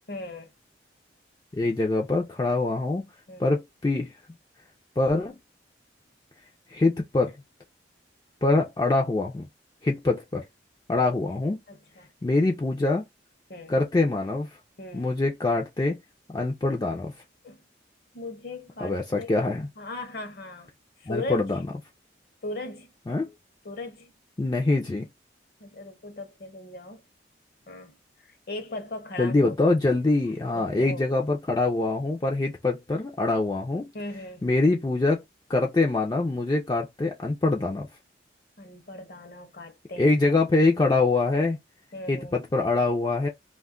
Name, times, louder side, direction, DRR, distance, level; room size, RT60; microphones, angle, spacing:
voice 1, 0.1-0.5 3.3-3.5 11.7-12.1 13.5-13.8 14.8-15.1 17.4-17.6 18.1-19.3 19.8-20.7 21.0-21.4 22.4-22.9 23.6-24.1 25.6-27.0 27.7-29.5 30.5-31.0 33.9-34.4 38.6-40.1 41.9-42.4, left 2 dB, 55° left, 0.7 m, -38 dB
voice 2, 1.5-3.1 3.4-4.1 5.0-5.4 6.7-7.4 8.4-9.5 9.8-10.4 10.9-11.6 12.2-13.0 13.7-14.6 14.9-16.0 16.3-17.1 18.8-19.7 21.1-21.6 23.1-23.3 24.4-25.1 29.2-33.9 34.4-35.2 35.5-37.9 40.0-41.6 42.1-43.3, left 2 dB, 20° left, 0.3 m, -24 dB
2.2 x 2.1 x 3.6 m
head